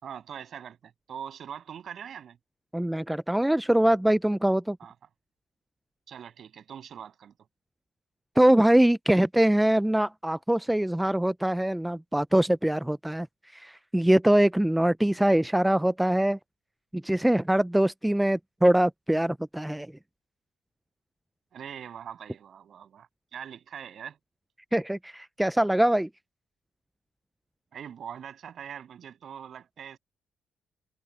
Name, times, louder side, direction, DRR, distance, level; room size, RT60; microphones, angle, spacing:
voice 1, 0.0-2.4 4.8-4.9 6.1-7.3 21.5-24.2 27.7-30.0, right 8 dB, 60° right, 7.0 m, -42 dB
voice 2, 2.7-4.8 8.4-13.3 13.5-16.4 16.9-19.9 24.7-26.1, right 1 dB, 5° right, 0.4 m, -23 dB
cardioid pair, 90°, 0 cm